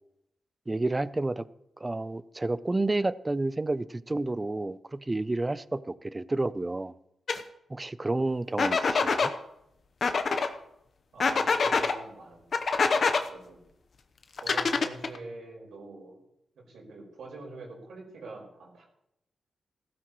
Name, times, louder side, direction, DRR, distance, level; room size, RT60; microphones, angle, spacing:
voice 1, 0.7-1.4 1.8-6.9 7.7-9.3, right 2 dB, 20° right, 0.5 m, -30 dB
sound 1, 7.3-7.4 8.6-9.3 10.0-10.5 11.2-11.9 12.5-13.2 14.4-15.2, left 4 dB, 55° left, 0.9 m, -25 dB
voice 2, 11.1-13.6 14.4-16.2 16.5-18.9, right 3 dB, 80° right, 4.8 m, -45 dB
15.5 x 13.0 x 3.1 m
cardioid pair, 95°, 0 cm